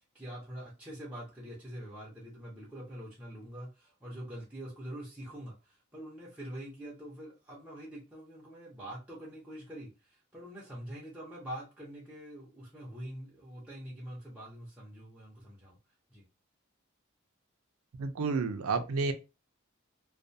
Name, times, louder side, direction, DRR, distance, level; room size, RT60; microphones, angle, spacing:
voice 1, 0.1-15.8 16.1-16.2, right 1 dB, 5° right, 0.7 m, -45 dB
voice 2, 18.0-19.1, right 4 dB, 85° right, 0.4 m, -30 dB
2.3 x 2.2 x 2.6 m
head